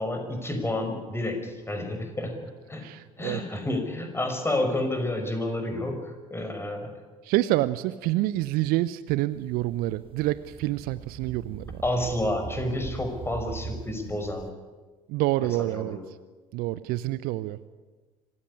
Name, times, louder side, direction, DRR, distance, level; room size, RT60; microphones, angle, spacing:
voice 1, 0.0-2.8 3.2-6.9 11.8-14.5 15.7-16.0, left 1 dB, 15° left, 5 dB, 5.5 m, -30 dB
voice 2, 2.8-3.4 7.2-11.8 15.1-16.0 16.5-17.6, right 16 dB, 55° right, 16 dB, 0.8 m, -27 dB
sound 1, 9.3-14.5, right 5 dB, 30° right, 1.8 m, -41 dB
25.0 x 15.5 x 9.8 m, 1.3 s
figure-of-eight pair, 60°, 18 cm